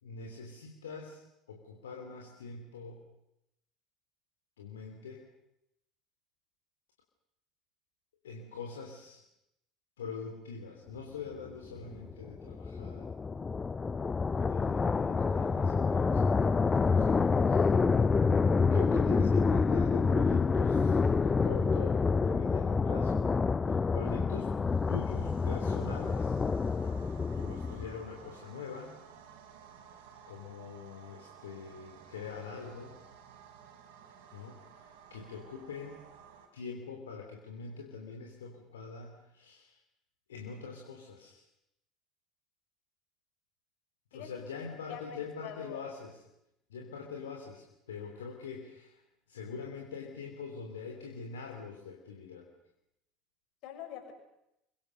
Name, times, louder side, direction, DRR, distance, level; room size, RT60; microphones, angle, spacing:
voice 1, 0.0-1.2 1.5-3.0 4.6-5.2 8.2-9.2 10.0-13.1 14.3-17.7 18.7-23.2 23.6-24.5 24.9-26.4 27.0-28.9 30.2-33.0 34.3-36.0 36.5-39.8 40.3-41.4 44.1-46.2 46.7-49.0 49.3-52.5, left 5 dB, 75° left, 0 dB, 3.4 m, -44 dB
sound 1, 11.8-28.0, left 4 dB, 25° left, 0.9 m, -27 dB
sound 2, 24.6-36.5, right 7 dB, 65° right, 3.8 m, -55 dB
voice 2, 44.9-45.8 53.6-54.1, left 9 dB, 55° left, 5 dB, 6.2 m, -44 dB
29.0 x 24.0 x 6.8 m, 0.85 s
figure-of-eight pair, 65°, 0 cm